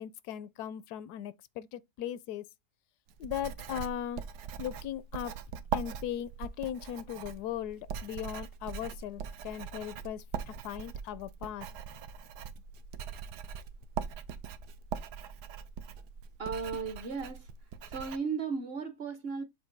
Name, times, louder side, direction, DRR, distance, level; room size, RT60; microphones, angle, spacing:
voice 1, 0.0-2.4 3.2-4.2 4.6-5.3 5.7-11.7, left 10 dB, 80° left, 1.1 m, -38 dB
Writing, 3.1-18.2, right 7 dB, 90° right, 1.3 m, -41 dB
voice 2, 16.4-17.5 17.8-19.4, right 5 dB, 50° right, 0.8 m, -35 dB
7.2 x 2.6 x 5.2 m
omnidirectional pair, 1.7 m